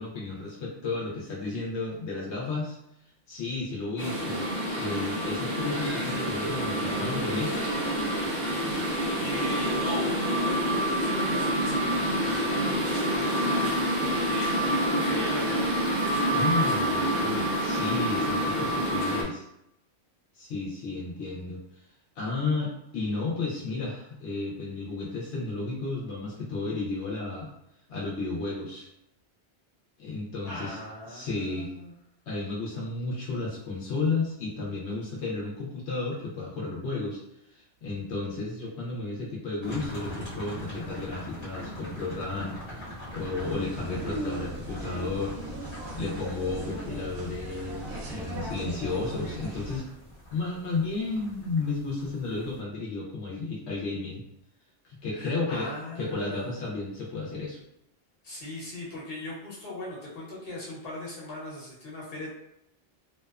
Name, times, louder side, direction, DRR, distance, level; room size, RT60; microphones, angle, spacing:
voice 1, 0.0-2.8 3.3-7.7 16.3-19.5 20.3-21.8 22.2-27.5 27.9-28.9 30.0-30.8 31.1-31.7 32.3-37.2 37.5-45.4 45.9-49.9 50.3-54.2 54.8-55.7 56.0-57.6, left 3 dB, 85° left, -4 dB, 0.9 m, -33 dB
sound 1, 4.0-19.2, equal, 50° right, 0.6 m, -27 dB
voice 2, 9.2-10.2 10.4-12.6 13.2-13.7 14.0-15.8 30.4-31.9 55.1-56.6 58.2-62.3, left 1 dB, 60° left, -6 dB, 1.1 m, -39 dB
sound 2, 39.6-52.6, equal, 25° left, 1.0 m, -43 dB
sound 3, 43.2-49.8, right 1 dB, 80° right, 0.9 m, -38 dB
2.7 x 2.1 x 2.3 m, 0.80 s
omnidirectional pair, 1.1 m